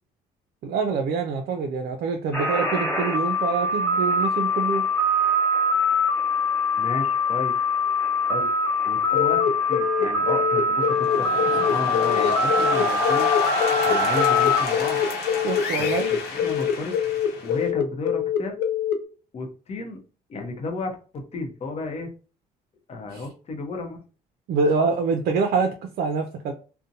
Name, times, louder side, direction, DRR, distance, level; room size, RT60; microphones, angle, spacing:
voice 1, 0.6-4.8 15.4-16.1 23.1-23.3 24.5-26.5, right 4 dB, 65° right, 5 dB, 0.4 m, -25 dB
sound 1, 2.3-14.7, left 2 dB, 15° left, 1.1 m, -23 dB
voice 2, 6.8-7.5 8.3-8.5 8.9-11.3 11.5-13.5 13.8-15.0 15.8-16.9 17.4-18.6 19.3-20.0 20.3-22.1 22.9-24.0, left 3 dB, 40° left, 4 dB, 0.7 m, -33 dB
sound 2, 9.1-19.0, left 9 dB, 85° left, 0.5 m, -24 dB
sound 3, 10.8-17.7, left 4 dB, 65° left, 0.9 m, -28 dB
2.6 x 2.1 x 2.6 m, 0.36 s
cardioid pair, 110°, 17 cm